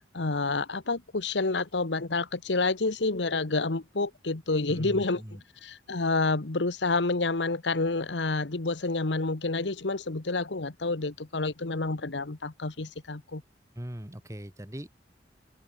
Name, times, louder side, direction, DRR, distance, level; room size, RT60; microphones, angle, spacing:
voice 1, 0.1-5.2 5.6-13.4, left 3 dB, 80° left, 1.3 m, -29 dB
voice 2, 4.7-5.4 13.7-14.9, equal, 15° right, 1.9 m, -40 dB
open air
head